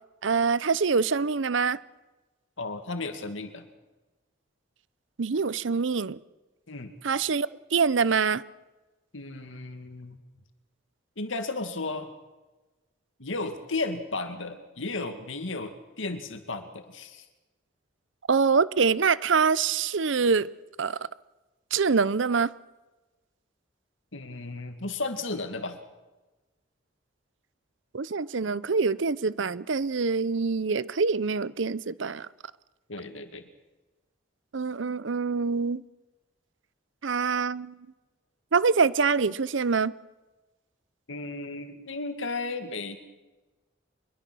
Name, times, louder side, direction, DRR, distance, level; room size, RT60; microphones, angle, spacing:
voice 1, 0.2-1.8 5.2-6.2 7.0-8.4 18.3-20.5 20.8-21.0 21.7-22.5 27.9-32.3 34.5-35.8 37.0-37.8 38.5-39.9, right 5 dB, 80° right, 0.7 m, -25 dB
voice 2, 2.6-3.7 6.7-6.9 9.1-10.2 11.2-12.1 13.2-17.3 24.1-25.8 32.9-33.5 41.1-43.0, left 3 dB, 85° left, 2.2 m, -34 dB
24.0 x 22.0 x 6.3 m
head